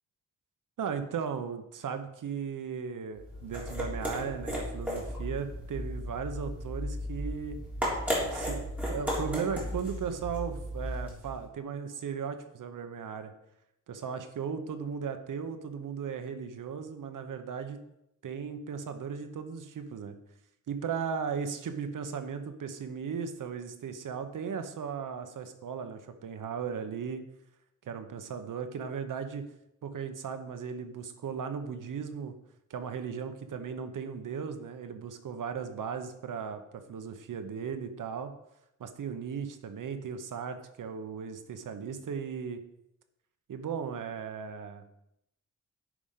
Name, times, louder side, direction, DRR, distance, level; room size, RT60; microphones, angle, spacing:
voice 1, 0.8-7.6 8.3-13.3 13.9-17.8 18.2-20.2 20.7-27.2 27.8-29.4 29.8-32.3 32.7-36.6 36.9-38.3 38.8-42.6 43.5-44.8, right 6 dB, 85° right, 8 dB, 1.0 m, -36 dB
sound 1, 3.2-11.4, equal, 5° right, 3.4 m, -35 dB
9.8 x 5.1 x 5.7 m, 0.83 s
wide cardioid pair, 145°, 31 cm